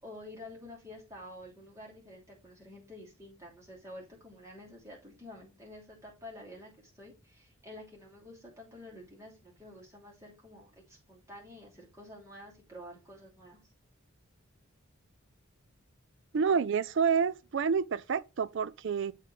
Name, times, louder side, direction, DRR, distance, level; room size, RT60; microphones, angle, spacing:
voice 1, 0.0-13.6, left 1 dB, 15° right, 3.0 m, -49 dB
voice 2, 16.3-19.1, right 6 dB, 60° right, 0.4 m, -28 dB
7.4 x 3.7 x 4.6 m
head